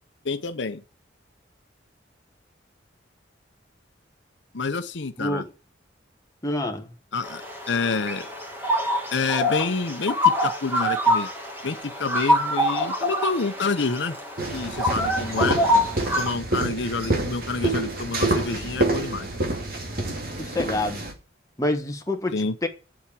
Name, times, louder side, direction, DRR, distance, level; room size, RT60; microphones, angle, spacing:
voice 1, 0.2-0.8 4.5-5.4 7.1-7.4 7.7-8.3 9.1-11.3 11.6-14.2 14.5-15.6 16.2-19.3 22.3-22.5, left 4 dB, 75° left, 0.8 m, -28 dB
voice 2, 5.2-5.5 6.4-6.9 20.4-21.0 21.6-22.7, left 1 dB, 20° left, 1.3 m, -27 dB
sound 1, 7.2-16.3, left 1 dB, 10° right, 2.4 m, -25 dB
sound 2, 14.4-21.1, right 2 dB, 50° right, 2.4 m, -27 dB
7.6 x 7.3 x 8.4 m
head